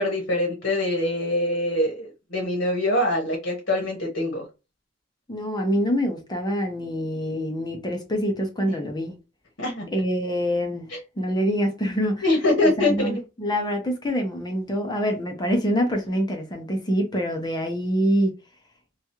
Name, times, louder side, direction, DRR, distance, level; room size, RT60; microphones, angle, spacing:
voice 1, 0.0-4.4 9.6-9.9 10.9-11.0 12.2-13.2, left 1 dB, 55° left, 1.1 m, -24 dB
voice 2, 5.3-9.1 9.9-10.9 11.2-12.2 12.8-18.3, equal, 20° left, 0.7 m, -25 dB
3.0 x 2.4 x 2.7 m
head